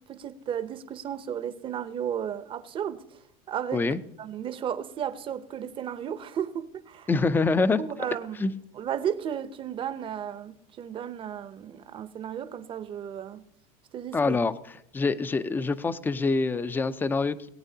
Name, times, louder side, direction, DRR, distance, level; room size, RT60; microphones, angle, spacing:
voice 1, 0.0-3.2 3.5-3.9 4.2-7.1 7.8-8.5 8.7-13.4 13.9-14.4, right 9 dB, 30° right, 0.7 m, -34 dB
voice 2, 7.1-7.8 8.4-8.5 14.1-14.5 14.9-17.5, left 4 dB, 10° left, 0.4 m, -25 dB
19.0 x 8.8 x 2.8 m
supercardioid pair, 125°, 18 cm